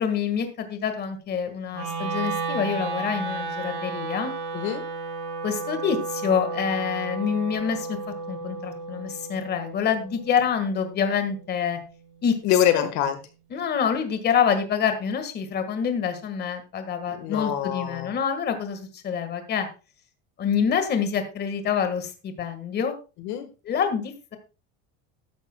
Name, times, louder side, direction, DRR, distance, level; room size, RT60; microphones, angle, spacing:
voice 1, 0.0-4.3 5.4-8.0 8.3-11.8 12.2-12.3 12.7-12.8 13.5-19.7 20.4-22.9 23.6-24.4, left 7 dB, 30° left, 7 dB, 1.6 m, -26 dB
Wind instrument woodwind instrument, 1.7-11.9, right 4 dB, 65° right, 6.5 m, -33 dB
voice 2, 4.5-4.8 12.4-13.2 17.1-18.1 23.2-23.5, left 11 dB, 55° left, 9 dB, 1.5 m, -24 dB
13.5 x 11.5 x 2.2 m, 0.31 s
cardioid pair, 160°, 34 cm